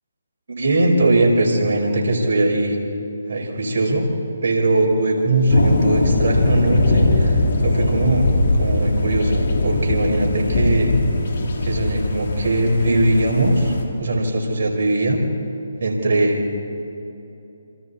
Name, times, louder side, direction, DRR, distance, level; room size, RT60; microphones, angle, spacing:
voice 1, 0.5-2.8 3.3-4.1 4.4-8.3 8.5-10.9 11.6-15.2 15.8-16.6, right 2 dB, 60° right, 0 dB, 5.0 m, -20 dB
sound 1, 5.5-13.9, left 2 dB, 60° left, 3.7 m, -20 dB
27.5 x 27.0 x 4.3 m, 2.9 s
hypercardioid pair, 150°, 0 cm